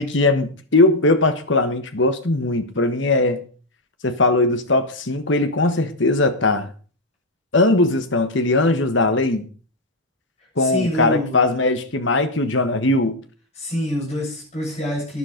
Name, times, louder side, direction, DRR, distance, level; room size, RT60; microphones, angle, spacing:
voice 1, 0.0-3.4 4.0-6.7 7.5-9.4 10.6-13.2, left 2 dB, 65° left, 1.4 m, -19 dB
voice 2, 10.6-11.5 13.5-15.2, equal, 30° left, 7.8 m, -26 dB
11.0 x 10.5 x 5.2 m
head